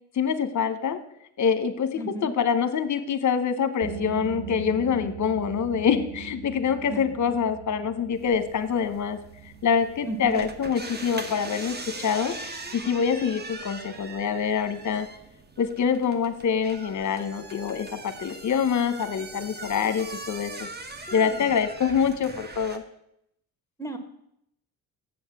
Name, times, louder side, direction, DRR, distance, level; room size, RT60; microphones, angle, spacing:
voice 1, 0.1-1.0 1.4-9.2 9.6-12.3 12.7-15.1 15.6-20.7 21.1-22.8, left 7 dB, 45° left, 11 dB, 1.1 m, -25 dB
voice 2, 2.0-2.3 6.9-7.0 10.0-10.4 21.1-21.5 23.8-24.0, right 2 dB, 5° left, 7 dB, 1.5 m, -34 dB
sound 1, 3.8-15.2, right 6 dB, 60° right, 1.5 m, -42 dB
sound 2, 8.1-22.8, right 3 dB, 25° right, 1.1 m, -41 dB
7.2 x 7.1 x 6.0 m, 0.76 s
supercardioid pair, 70°, 41 cm